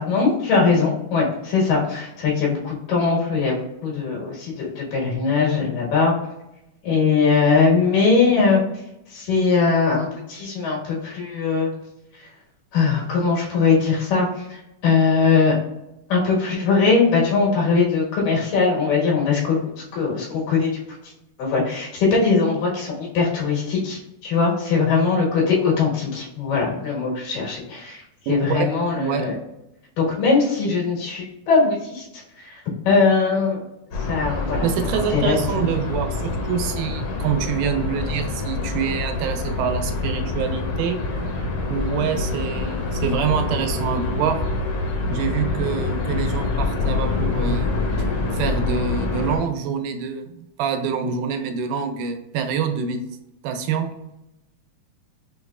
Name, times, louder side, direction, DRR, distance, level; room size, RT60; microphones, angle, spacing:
voice 1, 0.0-6.1 6.8-8.6 9.1-11.7 12.2-12.3 12.7-15.6 16.1-20.7 21.0-21.1 21.4-29.4 30.0-33.6 34.1-35.6, left 4 dB, 80° left, -4 dB, 3.1 m, -21 dB
voice 2, 28.3-28.7 28.9-29.2 34.6-41.0 41.7-44.4 45.1-47.7 48.3-53.1 53.4-53.9, right 7 dB, 85° right, 6 dB, 2.0 m, -26 dB
sound 1, 33.9-49.4, left 3 dB, 65° left, 1.6 m, -26 dB
5.9 x 3.0 x 2.4 m, 0.89 s
omnidirectional pair, 3.7 m